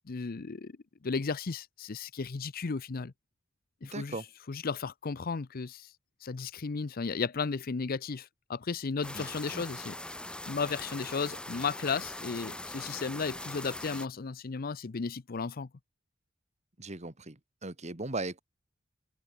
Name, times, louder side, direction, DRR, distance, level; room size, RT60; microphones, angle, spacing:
voice 1, 0.1-0.7 1.0-3.1 3.8-4.2 4.5-5.9 6.2-10.0 10.5-15.7, left 5 dB, 50° left, 0.6 m, -34 dB
voice 2, 3.8-4.2 9.1-9.2 9.5-9.6 16.8-18.4, right 2 dB, 35° right, 2.2 m, -38 dB
sound 1, 9.0-14.1, left 1 dB, 5° left, 0.9 m, -41 dB
head